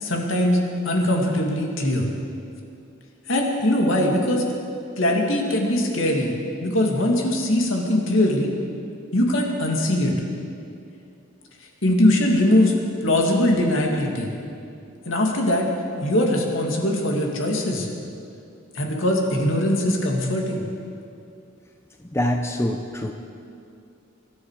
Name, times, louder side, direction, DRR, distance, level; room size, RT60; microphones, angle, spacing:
voice 1, 0.0-2.1 3.3-4.4 5.0-6.3 6.6-8.5 9.1-10.2 11.8-12.7 13.0-14.3 15.1-15.7 16.0-17.9 18.7-20.6, left 1 dB, 70° left, 0 dB, 2.4 m, -21 dB
voice 2, 22.1-23.1, left 1 dB, 15° left, 3 dB, 0.7 m, -24 dB
24.0 x 12.0 x 4.9 m, 2.5 s
head